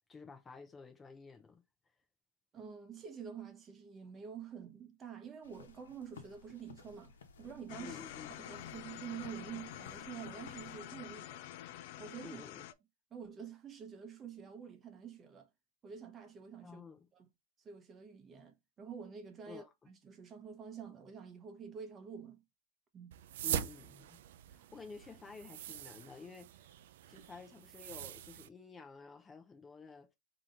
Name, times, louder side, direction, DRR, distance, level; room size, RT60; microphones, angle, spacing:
voice 1, 0.1-1.6 7.8-8.3 12.2-12.7 16.6-17.1 19.5-19.9 23.4-24.2 24.5-26.8 27.1-30.1, left 4 dB, 15° left, 0.7 m, -52 dB
voice 2, 2.5-8.1 8.4-11.4 12.0-12.4 13.1-15.5 15.8-16.8 17.1-17.3 17.6-22.4 22.9-23.2, right 7 dB, 20° right, 1.0 m, -48 dB
sound 1, 5.4-10.8, left 5 dB, 90° left, 1.0 m, -57 dB
sound 2, 7.7-12.7, left 13 dB, 55° left, 0.5 m, -48 dB
sound 3, 23.1-28.5, right 11 dB, 65° right, 0.4 m, -43 dB
3.8 x 2.9 x 3.8 m
hypercardioid pair, 130°, 0 cm